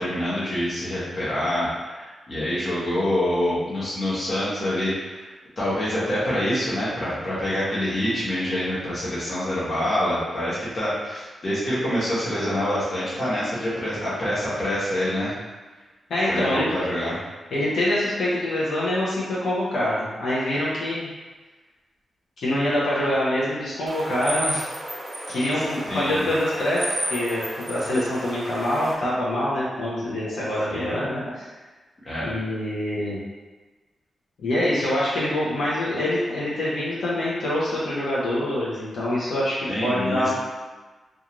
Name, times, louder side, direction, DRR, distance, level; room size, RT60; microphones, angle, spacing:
voice 1, 0.0-5.3 5.6-15.4 16.3-17.2 25.9-26.2 30.7-31.0 32.0-32.3 39.7-40.3, left 1 dB, 30° left, -9 dB, 1.0 m, -26 dB
voice 2, 16.1-16.7 17.5-21.1 22.4-24.7 25.3-26.9 27.1-31.5 32.2-33.2 34.4-40.3, left 1 dB, 70° left, -8 dB, 0.6 m, -25 dB
sound 1, 23.9-29.0, right 1 dB, 25° right, 0.4 m, -32 dB
2.4 x 2.3 x 2.9 m, 1.3 s
wide cardioid pair, 145°, 0 cm